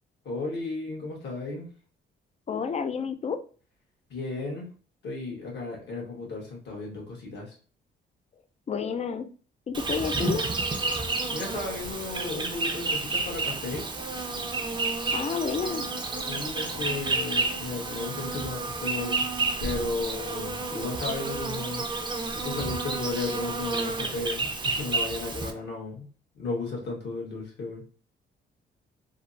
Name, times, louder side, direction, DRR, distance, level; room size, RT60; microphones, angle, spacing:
voice 1, 0.2-1.7 4.1-4.7 5.0-7.5 11.3-13.9 16.3-19.2 19.6-21.9 22.3-26.1 26.3-27.8, left 3 dB, 65° left, -2 dB, 1.4 m, -34 dB
voice 2, 2.5-3.4 8.7-9.3 9.7-10.4 15.1-15.8, left 6 dB, 35° left, 9 dB, 0.4 m, -30 dB
Insect, 9.7-25.5, right 3 dB, 25° right, 0.5 m, -30 dB
3.2 x 2.0 x 2.6 m, 0.40 s
cardioid pair, 90°, 20 cm